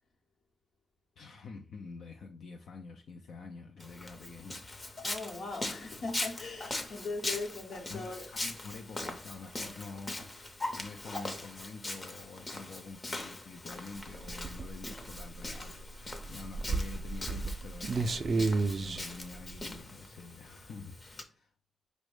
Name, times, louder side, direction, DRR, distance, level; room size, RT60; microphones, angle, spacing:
voice 1, 1.2-4.6 7.3-7.5 7.9-10.5 10.8-21.5, left 4 dB, 80° left, 0.4 m, -47 dB
Walk footsteps, 3.8-21.2, left 2 dB, 25° left, 0.7 m, -41 dB
voice 2, 5.0-8.3, left 3 dB, 60° left, 0.9 m, -39 dB
sound 1, 14.0-19.8, right 3 dB, 40° right, 0.3 m, -33 dB
5.1 x 2.1 x 4.8 m
wide cardioid pair, 150°, 0 cm